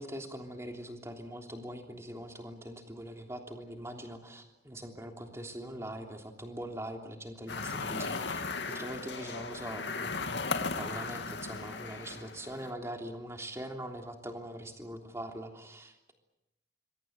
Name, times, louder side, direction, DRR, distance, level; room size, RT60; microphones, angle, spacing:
voice 1, 0.0-10.1 10.8-16.1, right 1 dB, 15° right, 3 dB, 3.2 m, -42 dB
sound 1, 7.5-12.7, left 4 dB, 80° left, 2.3 m, -36 dB
26.0 x 23.0 x 8.1 m, 0.90 s
head